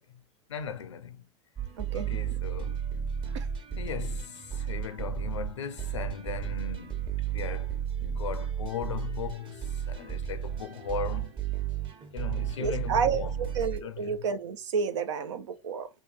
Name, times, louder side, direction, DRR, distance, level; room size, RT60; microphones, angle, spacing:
voice 1, 0.5-1.2 1.9-2.9 3.8-11.4 12.1-13.5 13.8-14.2, left 7 dB, 90° left, 0.6 m, -38 dB
sound 1, 1.6-13.8, right 9 dB, 35° right, 1.1 m, -33 dB
voice 2, 1.8-2.1 3.3-3.5 12.6-15.9, right 6 dB, 80° right, 0.7 m, -30 dB
3.1 x 2.4 x 3.9 m
hypercardioid pair, 90°, 15 cm